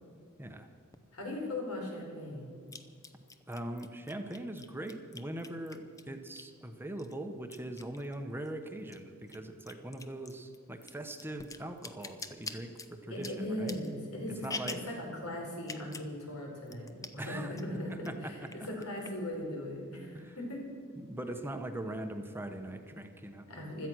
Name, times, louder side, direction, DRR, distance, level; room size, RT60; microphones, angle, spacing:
sound 1, 0.9-1.0 2.7-6.6 7.0-8.5 8.8-15.0 15.6-16.1 16.4-16.5 16.7-17.3 17.6-18.1 18.5-19.3, left 3 dB, 15° left, 0.7 m, -45 dB
voice 1, 1.1-2.5 13.1-20.6 23.5-23.9, left 1 dB, 90° left, 0 dB, 4.6 m, -39 dB
voice 2, 3.5-13.7 14.3-14.8 17.2-17.5 17.9-18.3 20.1-20.4 21.0-23.5, right 1 dB, 10° right, 6 dB, 0.9 m, -41 dB
16.5 x 13.0 x 6.2 m, 2.2 s
head